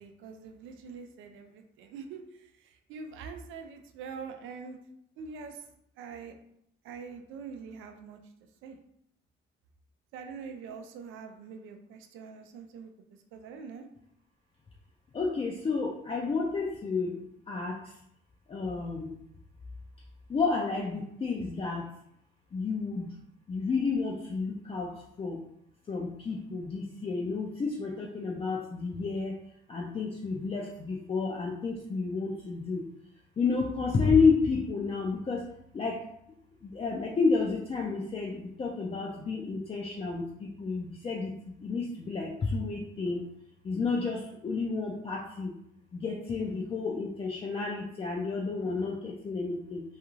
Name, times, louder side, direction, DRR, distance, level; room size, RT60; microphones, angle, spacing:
voice 1, 0.0-4.8 5.2-5.7 6.0-6.4 6.8-8.3 8.6-8.8 10.1-13.9, right 5 dB, 85° right, 6 dB, 0.4 m, -44 dB
voice 2, 15.1-17.9 18.5-19.1 20.3-21.9 22.5-23.1 23.5-25.4 25.9-29.4 29.7-32.8 33.4-35.5 35.7-36.1 36.6-43.3 43.6-45.5 45.9-49.8, left 4 dB, 30° left, -2 dB, 0.4 m, -31 dB
2.4 x 2.3 x 3.0 m, 0.74 s
cardioid pair, 90°, 20 cm